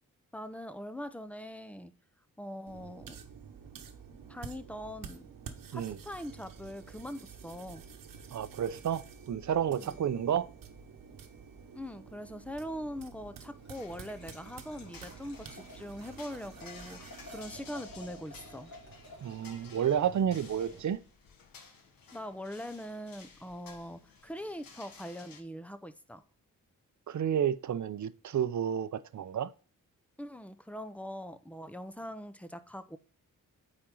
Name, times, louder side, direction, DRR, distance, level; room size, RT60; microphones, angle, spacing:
voice 1, 0.3-1.9 2.4-3.2 4.3-5.4 5.7-7.8 9.8-10.0 11.7-17.0 17.3-18.7 22.1-26.2 30.2-33.0, equal, 5° left, 0.6 m, -42 dB
sound 1, 2.7-20.8, right 6 dB, 75° right, 1.1 m, -50 dB
voice 2, 8.3-10.5 19.2-21.0 27.1-29.5, right 9 dB, 60° right, 0.6 m, -31 dB
Liquid, 13.6-20.4, left 2 dB, 55° left, 3.1 m, -53 dB
sound 2, 13.7-25.4, left 5 dB, 85° left, 1.4 m, -55 dB
8.7 x 4.4 x 3.8 m
cardioid pair, 85°, 34 cm